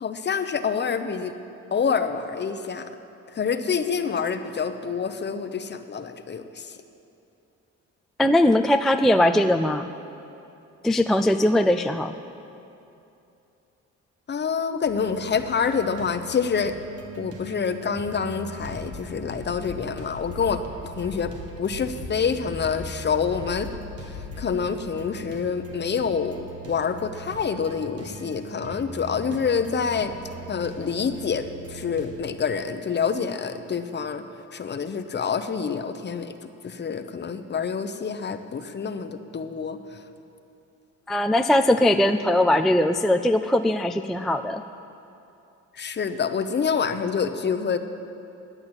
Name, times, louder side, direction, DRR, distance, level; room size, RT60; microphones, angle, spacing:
voice 1, 0.0-1.3 1.7-2.9 3.3-6.8 14.3-16.8 17.2-23.7 24.1-30.1 30.5-34.2 34.5-36.3 36.6-40.0 45.7-47.8, left 6 dB, 35° left, 8 dB, 0.8 m, -27 dB
voice 2, 8.2-9.9 10.8-12.1 41.1-44.6, left 1 dB, ahead, 6 dB, 0.3 m, -20 dB
sound 1, 14.9-32.2, right 1 dB, 50° right, 1.6 m, -42 dB
sound 2, 18.6-24.6, left 2 dB, 80° right, 3.6 m, -40 dB
10.5 x 8.9 x 8.0 m, 2.8 s
cardioid pair, 90°, 30 cm